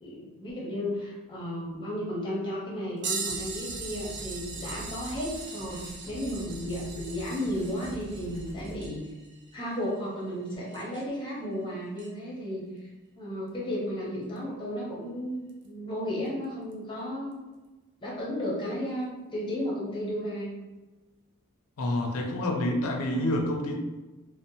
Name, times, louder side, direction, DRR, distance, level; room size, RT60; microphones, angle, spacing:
voice 1, 0.0-9.0 9.5-12.6 13.2-17.4 18.0-20.5, equal, 20° left, -5 dB, 0.6 m, -34 dB
sound 1, 3.0-11.2 12.0-12.1 14.4-14.5 15.5-15.7 16.7-16.8, right 5 dB, 50° right, 0.5 m, -40 dB
sound 2, 3.3-8.9, equal, 20° right, 0.8 m, -45 dB
voice 2, 21.8-23.8, left 1 dB, 75° left, 2 dB, 0.4 m, -28 dB
2.7 x 2.0 x 2.6 m, 1.2 s
head